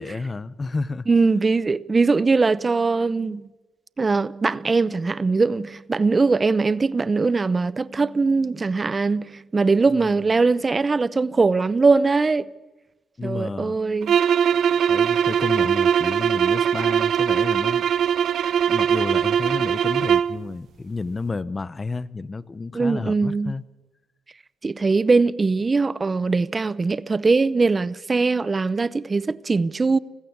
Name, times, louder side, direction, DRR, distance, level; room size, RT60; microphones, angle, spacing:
voice 1, 0.0-1.1 9.9-10.1 13.2-13.8 14.9-17.9 18.7-23.6, left 3 dB, 25° left, 0.8 m, -31 dB
voice 2, 1.1-3.5 4.0-12.5 13.2-14.2 22.7-23.5 24.6-30.0, right 4 dB, 30° right, 0.7 m, -21 dB
sound 1, 14.0-20.4, right 8 dB, 65° right, 0.8 m, -21 dB
20.5 x 15.5 x 8.2 m
cardioid pair, 90°, 0 cm